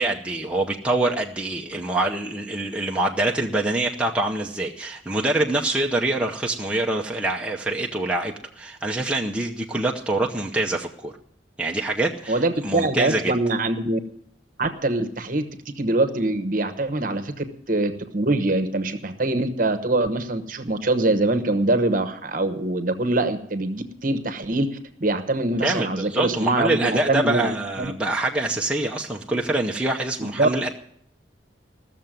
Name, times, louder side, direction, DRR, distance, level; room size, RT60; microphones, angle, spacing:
voice 1, 0.0-11.1 11.6-13.3 25.6-30.7, right 2 dB, 5° right, -1 dB, 0.7 m, -25 dB
voice 2, 12.3-14.0 14.6-15.4 15.8-24.7 25.0-27.5 27.8-27.9 30.2-30.7, right 2 dB, 45° right, 10 dB, 1.0 m, -23 dB
15.0 x 6.8 x 9.0 m, 0.67 s
head